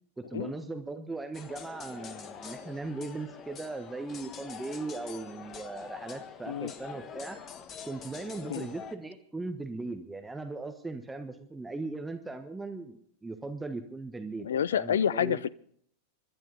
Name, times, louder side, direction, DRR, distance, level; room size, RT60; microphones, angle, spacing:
voice 1, 0.2-7.4 7.8-15.4, right 3 dB, 10° right, 6 dB, 1.3 m, -38 dB
sound 1, 1.3-9.0, left 7 dB, 30° left, 1.3 m, -45 dB
voice 2, 14.4-15.5, left 8 dB, 65° left, 21 dB, 0.5 m, -28 dB
25.0 x 12.0 x 4.0 m, 0.63 s
figure-of-eight pair, 90°, 0 cm